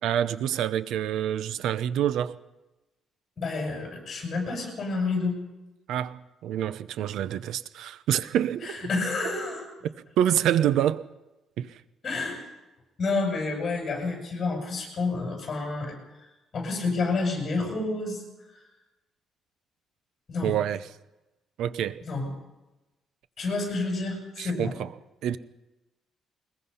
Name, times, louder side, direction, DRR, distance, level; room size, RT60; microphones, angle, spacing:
voice 1, 0.0-2.4 5.9-8.8 9.8-11.0 11.6-11.8 20.4-20.8 21.6-22.0 24.4-24.9 25.2-25.4, right 10 dB, 75° right, 0.7 m, -27 dB
voice 2, 3.4-5.4 8.6-9.7 12.0-12.4 13.0-16.0 16.5-18.2 20.3-20.5 22.0-22.3 23.4-24.7, left 3 dB, 30° left, 7.4 m, -29 dB
22.0 x 21.0 x 5.6 m
cardioid pair, 175°, 0 cm